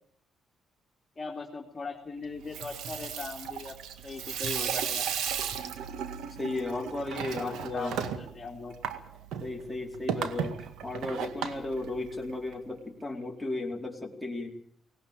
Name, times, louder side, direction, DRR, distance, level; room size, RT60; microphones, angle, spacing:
voice 1, 1.2-3.8 4.0-5.1 7.4-8.7, left 4 dB, 30° left, 0 dB, 3.0 m, -39 dB
Water tap faucet / Sink (filling or washing), 2.3-12.5, right 8 dB, 85° right, 1.9 m, -35 dB
voice 2, 6.4-8.0 9.4-14.6, left 2 dB, 5° left, -1 dB, 4.5 m, -35 dB
18.5 x 18.5 x 8.9 m, 0.64 s
cardioid pair, 90°, 0 cm